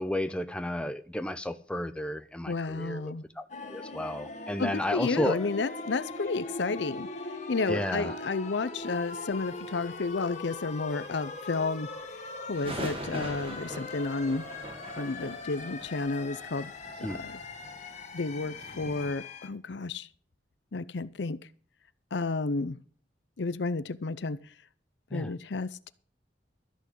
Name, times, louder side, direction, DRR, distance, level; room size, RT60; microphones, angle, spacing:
voice 1, 0.0-5.5 7.7-8.2 17.0-17.2 25.1-25.3, left 1 dB, 5° left, 0.7 m, -33 dB
voice 2, 2.5-3.2 4.6-7.1 7.5-11.9 12.5-14.4 15.0-16.7 17.0-17.4 18.1-20.1 20.7-21.4 22.1-22.8 23.4-24.4 25.1-25.9, left 3 dB, 75° left, 0.6 m, -31 dB
sound 1, 3.5-19.5, left 3 dB, 40° left, 1.6 m, -41 dB
sound 2, 9.3-10.6 10.8-11.3 11.6-11.7 11.9-19.1, right 1 dB, 30° right, 1.9 m, -43 dB
13.5 x 6.0 x 8.4 m
head